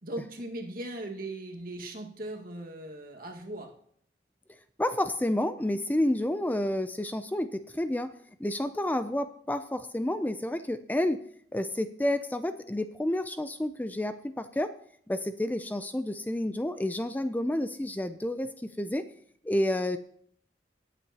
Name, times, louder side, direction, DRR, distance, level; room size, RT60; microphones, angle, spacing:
voice 1, 0.0-3.7, right 1 dB, 55° right, 2 dB, 1.8 m, -39 dB
voice 2, 4.8-8.1 8.4-11.2 11.5-14.7 15.1-19.1 19.4-20.0, left 1 dB, 10° left, 11 dB, 0.4 m, -30 dB
18.0 x 8.3 x 2.9 m, 0.63 s
head